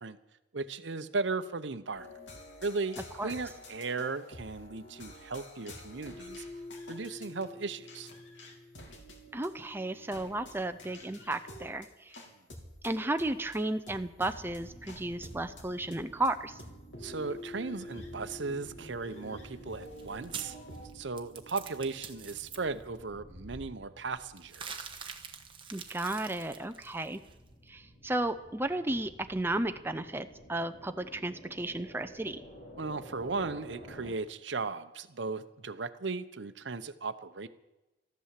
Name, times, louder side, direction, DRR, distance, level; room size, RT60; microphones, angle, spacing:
voice 1, 0.5-2.2 2.6-6.4 6.9-8.1 17.0-20.6 20.9-24.9 32.8-37.5, right 4 dB, 70° right, 12 dB, 0.8 m, -36 dB
sound 1, 1.9-20.9, left 1 dB, 75° left, 2.8 m, -48 dB
voice 2, 9.3-12.1 12.8-16.6 25.7-27.2 27.7-32.4, right 2 dB, 10° right, 8 dB, 0.6 m, -34 dB
sound 2, 14.2-34.1, right 1 dB, 40° left, 5.2 m, -53 dB
sound 3, 19.7-22.6 24.4-27.3, right 6 dB, 30° right, 1.3 m, -45 dB
13.5 x 11.5 x 7.5 m, 1.0 s
head